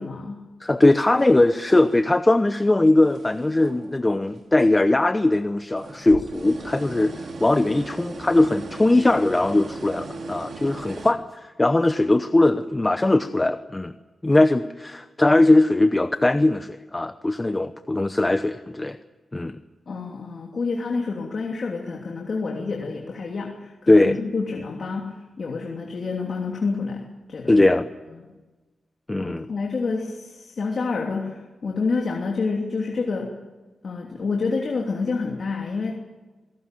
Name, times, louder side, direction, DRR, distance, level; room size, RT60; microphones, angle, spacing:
voice 1, 0.0-0.4 19.9-27.6 29.2-33.3 33.8-36.1, left 4 dB, 55° left, 0 dB, 2.9 m, -28 dB
voice 2, 0.6-13.9 14.2-19.0 19.3-19.6 23.9-24.2 27.5-27.9 29.1-29.5, left 2 dB, 20° left, 10 dB, 0.8 m, -20 dB
sound 1, 1.1-2.4 2.7-4.4 4.7-4.8 5.6-11.1, right 3 dB, 65° right, 3.1 m, -38 dB
26.0 x 18.0 x 9.2 m, 1.2 s
wide cardioid pair, 115°, 0 cm